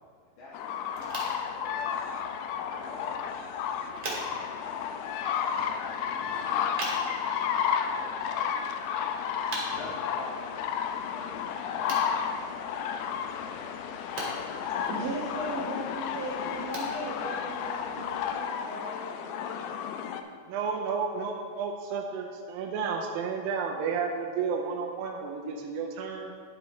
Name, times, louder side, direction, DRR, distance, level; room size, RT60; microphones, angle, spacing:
voice 1, 0.4-1.2 1.8-2.2 2.7-3.5 3.7-4.1 4.6-7.4 7.9-9.1 9.5-11.4 11.7-13.6 14.2-14.8, left 2 dB, 60° left, -8 dB, 2.5 m, -48 dB
sound 1, 0.5-20.2, left 7 dB, 85° left, 2.4 m, -32 dB
sound 2, 0.9-18.2, right 1 dB, 45° right, 2.3 m, -44 dB
voice 2, 14.9-20.0, right 1 dB, 65° right, -8 dB, 1.3 m, -38 dB
voice 3, 20.5-26.3, right 5 dB, 80° right, 1 dB, 2.2 m, -32 dB
11.0 x 8.6 x 3.1 m, 2.1 s
omnidirectional pair, 4.6 m